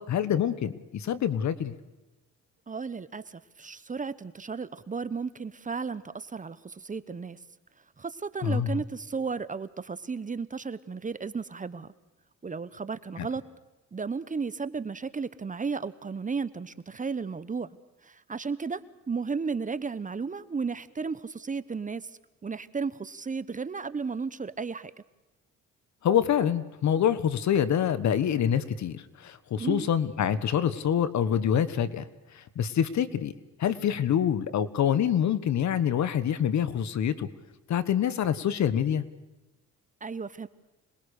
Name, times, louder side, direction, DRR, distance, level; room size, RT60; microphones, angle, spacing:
voice 1, 0.0-1.7 8.4-8.8 13.2-13.3 26.0-32.0 32.3-33.3 33.6-37.3 37.7-39.0, left 9 dB, 65° left, 15 dB, 1.4 m, -26 dB
voice 2, 2.7-7.4 8.0-11.9 12.4-13.4 13.9-17.7 18.0-18.8 19.1-22.1 22.4-24.9 29.6-29.9 40.0-40.5, right 5 dB, 25° right, 15 dB, 1.0 m, -34 dB
27.0 x 21.0 x 6.6 m, 1.1 s
cardioid pair, 90°, 30 cm